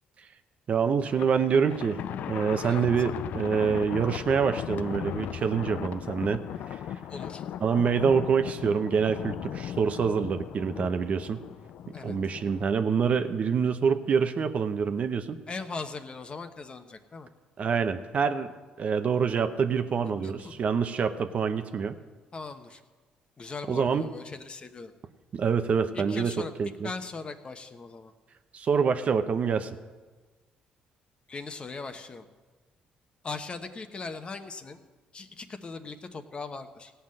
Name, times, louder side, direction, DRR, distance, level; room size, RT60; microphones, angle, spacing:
voice 1, 0.7-2.0 2.3-6.4 6.7-6.8 7.6-11.4 12.0-15.4 17.6-18.5 18.8-22.0 23.7-24.0 25.3-26.9 28.5-29.7, right 6 dB, 50° right, 9 dB, 0.8 m, -26 dB
Thunder, 1.0-12.8, left 10 dB, 70° left, 0.4 m, -37 dB
voice 2, 7.1-7.4 11.9-12.2 15.5-17.3 20.2-20.5 22.3-22.8 23.4-24.9 25.9-26.6 26.8-28.1 31.3-32.3 33.2-34.8 35.1-36.9, left 4 dB, 35° left, 8 dB, 1.0 m, -39 dB
16.5 x 5.7 x 7.7 m, 1.3 s
cardioid pair, 80°, 3 cm